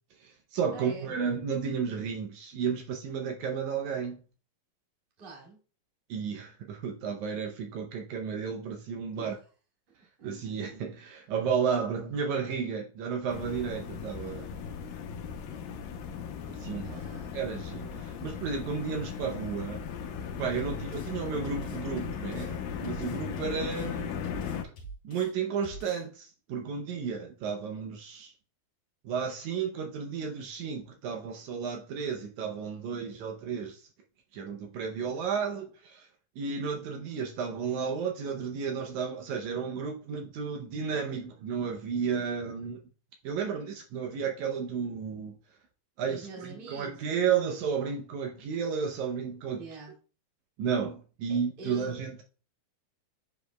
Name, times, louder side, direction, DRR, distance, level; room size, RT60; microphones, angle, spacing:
voice 1, 0.2-4.2 6.1-9.4 10.2-14.5 16.5-17.0 17.3-19.8 20.4-24.1 25.0-28.3 29.0-33.8 34.3-36.1 36.4-42.8 43.2-45.4 46.0-49.7 50.6-52.2, right 6 dB, 75° right, 1.8 m, -33 dB
voice 2, 0.7-1.2 5.2-5.6 9.1-9.3 9.9-10.3 14.5-14.6 16.8-17.4 46.1-47.2 49.5-49.9 51.3-52.0, right 3 dB, 25° right, 1.3 m, -46 dB
sound 1, 13.3-24.6, left 7 dB, 80° left, 2.4 m, -37 dB
sound 2, 20.6-21.1 21.4-22.5 22.8-23.9 24.2-25.3 25.6-26.0, right 3 dB, 50° left, 3.2 m, -45 dB
9.3 x 5.0 x 2.2 m
omnidirectional pair, 4.1 m